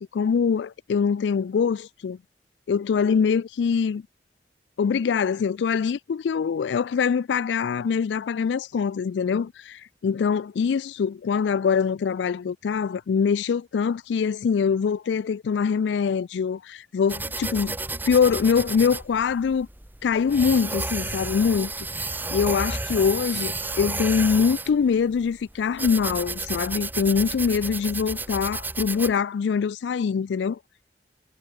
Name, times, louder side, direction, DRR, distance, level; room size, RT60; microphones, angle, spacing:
voice 1, 0.1-2.2 2.7-4.0 4.8-17.8 18.0-19.7 20.0-21.9 22.3-30.6, left 6 dB, 85° left, 0.4 m, -23 dB
sound 1, 17.1-29.1, right 3 dB, 10° right, 2.2 m, -32 dB
head